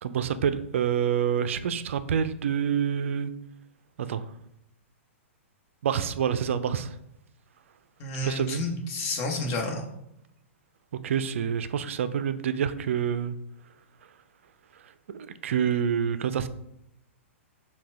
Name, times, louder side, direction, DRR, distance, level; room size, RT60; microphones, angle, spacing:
voice 1, 0.0-3.3 4.0-4.3 5.8-6.9 8.2-8.6 11.0-13.4 15.1-16.5, right 8 dB, 65° right, 12 dB, 0.3 m, -27 dB
voice 2, 8.0-9.9, left 2 dB, 40° left, 1 dB, 1.0 m, -30 dB
5.7 x 2.2 x 3.3 m, 0.79 s
hypercardioid pair, 115°, 7 cm